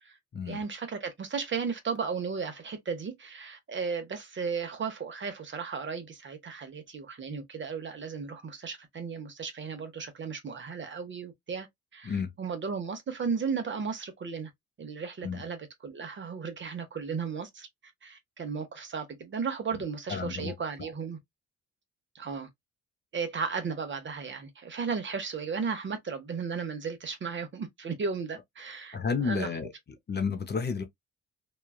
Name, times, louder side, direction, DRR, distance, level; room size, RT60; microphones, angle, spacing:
voice 1, 0.4-11.7 11.9-14.5 14.8-17.7 18.0-21.2 22.1-22.5 23.1-29.0 29.2-29.5, right 5 dB, 40° right, 0.9 m, -35 dB
voice 2, 20.1-20.9 28.9-29.7 30.1-30.8, left 5 dB, 35° left, 0.7 m, -31 dB
3.1 x 2.3 x 2.2 m
cardioid pair, 90°, 30 cm